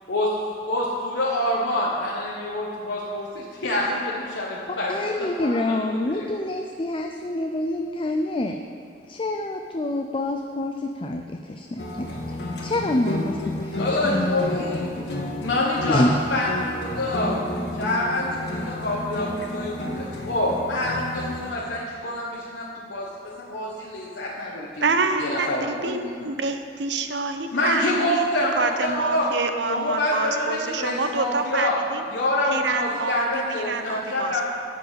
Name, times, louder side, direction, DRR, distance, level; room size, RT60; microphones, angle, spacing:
voice 1, 0.7-5.6 5.9-6.3 13.8-15.0 15.4-16.0 16.3-17.4 17.7-23.1 23.4-24.9 25.2-26.3 27.5-29.3 29.7-31.7 32.1-34.5, left 1 dB, 90° left, -5 dB, 1.2 m, -26 dB
voice 2, 4.9-8.5 9.1-12.4 12.6-15.1 15.9-16.2, left 1 dB, 30° left, 4 dB, 0.5 m, -27 dB
sound 1, 11.8-21.5, left 1 dB, 70° left, 1.5 m, -32 dB
voice 3, 24.8-25.5 25.8-28.2 28.6-32.0 32.5-34.4, right 4 dB, 85° right, 7 dB, 0.7 m, -27 dB
12.0 x 4.7 x 8.1 m, 2.3 s
head